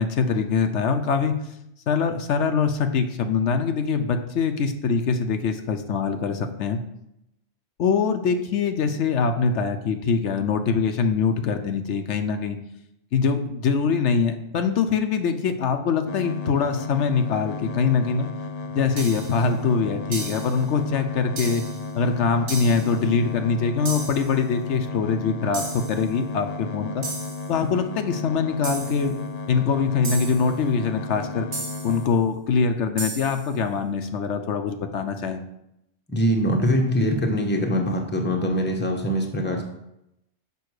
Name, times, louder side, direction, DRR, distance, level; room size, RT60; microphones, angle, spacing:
voice 1, 0.0-1.4 1.9-6.8 7.8-12.6 13.1-18.3 18.7-21.6 21.9-27.0 27.5-29.1 29.5-31.5 31.8-35.4, left 5 dB, 75° left, 7 dB, 1.0 m, -23 dB
sound 1, 16.1-32.1, left 3 dB, 45° left, 0.5 m, -34 dB
sound 2, 19.0-19.5 20.1-20.6 21.4-21.9 22.5-23.0 23.9-24.4 25.5-26.1 27.0-27.5 28.6-29.1 30.0-30.6 31.5-32.0 33.0-33.5, right 2 dB, 85° right, 1.8 m, -34 dB
voice 2, 36.1-39.6, equal, 10° left, 1 dB, 0.9 m, -23 dB
7.0 x 5.3 x 4.7 m, 0.83 s
omnidirectional pair, 1.2 m